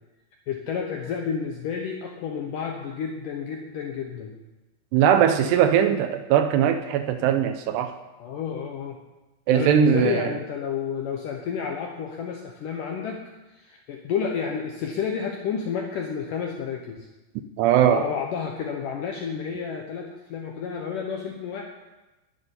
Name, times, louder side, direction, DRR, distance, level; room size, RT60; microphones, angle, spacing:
voice 1, 0.5-4.3 8.2-9.0 9.5-13.2 13.5-17.1 17.9-21.6, left 7 dB, 75° left, 2 dB, 1.9 m, -30 dB
voice 2, 4.9-7.9 9.5-10.3 17.6-18.0, right 9 dB, 80° right, 8 dB, 2.6 m, -20 dB
11.0 x 9.3 x 9.9 m, 1.1 s
omnidirectional pair, 5.3 m